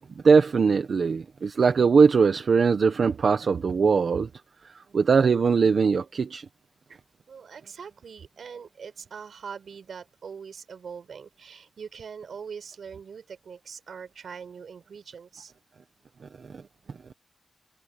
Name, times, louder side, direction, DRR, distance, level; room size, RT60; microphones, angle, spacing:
voice 1, 0.2-4.3 4.9-6.4, right 5 dB, 60° right, 1.1 m, -20 dB
voice 2, 7.3-15.5, right 6 dB, 80° right, 4.7 m, -42 dB
wide cardioid pair, 140°, 0 cm